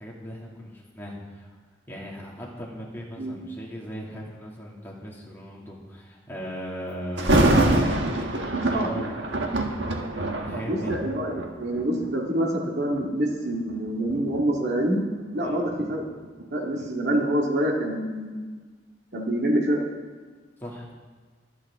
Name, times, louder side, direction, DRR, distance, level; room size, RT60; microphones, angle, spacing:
voice 1, 0.0-1.6 1.9-9.2 10.4-11.0 15.4-15.6 16.8-16.9 20.6-20.9, equal, 10° left, -4 dB, 2.5 m, -38 dB
Thunder, 7.2-12.1 12.8-13.0 13.7-16.5 16.8-16.9, right 1 dB, 85° right, 1.4 m, -25 dB
voice 2, 8.0-9.1 10.7-15.1 15.3-16.0 16.5-18.5 19.1-19.8, right 1 dB, 65° right, -1 dB, 2.2 m, -26 dB
24.0 x 8.5 x 3.7 m, 1.5 s
head